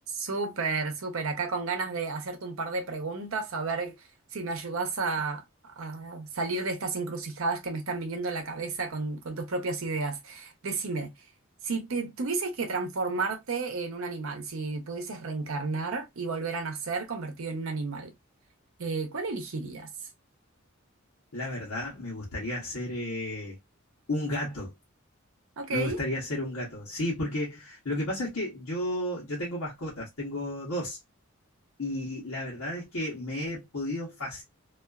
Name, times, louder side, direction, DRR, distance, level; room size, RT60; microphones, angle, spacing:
voice 1, 0.1-4.0 4.3-11.1 11.6-18.1 18.8-19.9 25.6-26.0, right 3 dB, 70° right, 0.7 m, -32 dB
voice 2, 21.3-23.6 24.1-24.7 25.7-31.0 31.8-34.4, left 1 dB, 80° left, 0.9 m, -33 dB
2.4 x 2.3 x 2.3 m
head